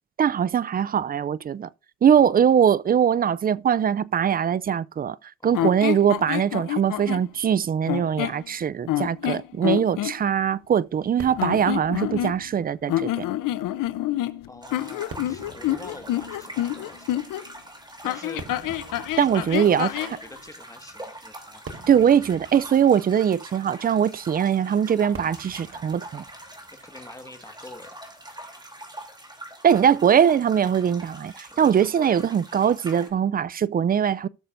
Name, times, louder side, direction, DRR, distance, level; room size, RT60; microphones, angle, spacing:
voice 1, 0.2-1.7 2.0-5.2 5.4-13.3 19.2-19.9 21.9-26.2 29.6-34.3, right 8 dB, 30° right, 0.4 m, -21 dB
sound 1, 5.5-7.3 7.9-8.4 8.9-10.2 11.3-12.6 12.9-17.4 18.0-20.2, left 14 dB, 75° left, 0.7 m, -27 dB
Fireworks, 11.2-28.5, right 3 dB, 45° right, 1.6 m, -47 dB
voice 2, 14.5-17.2 18.0-18.8 19.2-21.8 26.7-28.0 29.9-30.1 31.5-32.3, left 2 dB, 10° left, 1.6 m, -45 dB
sound 2, 14.6-33.1, right 1 dB, 15° right, 3.0 m, -43 dB
17.0 x 6.7 x 2.6 m
cardioid pair, 85°, 33 cm